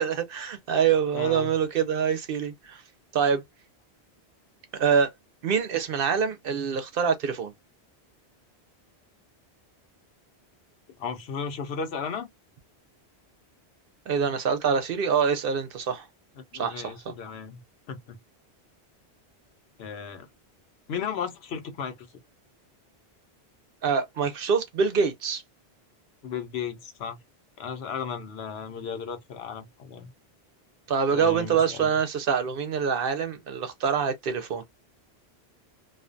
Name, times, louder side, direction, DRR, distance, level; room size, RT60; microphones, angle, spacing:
voice 1, 0.0-2.8 3.1-3.4 4.7-5.1 5.4-7.5 14.1-16.1 16.6-17.1 23.8-25.4 30.9-34.6, right 6 dB, 65° right, 0.7 m, -25 dB
voice 2, 1.1-1.5 11.0-12.3 16.4-17.6 17.9-18.2 19.8-20.3 20.9-22.1 26.2-27.2 27.6-30.1 31.1-32.0, left 6 dB, 70° left, 0.9 m, -35 dB
2.5 x 2.2 x 2.5 m
omnidirectional pair, 1.1 m